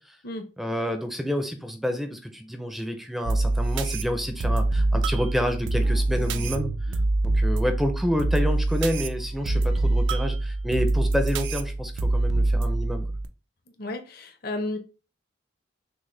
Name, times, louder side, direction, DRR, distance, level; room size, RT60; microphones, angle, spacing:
voice 1, 0.6-6.7 7.2-13.1, equal, ahead, 0.4 m, -29 dB
sound 1, 3.2-13.3, right 2 dB, 80° right, 0.5 m, -25 dB
voice 2, 13.8-14.8, left 2 dB, 55° left, 0.8 m, -32 dB
6.2 x 2.1 x 3.2 m
head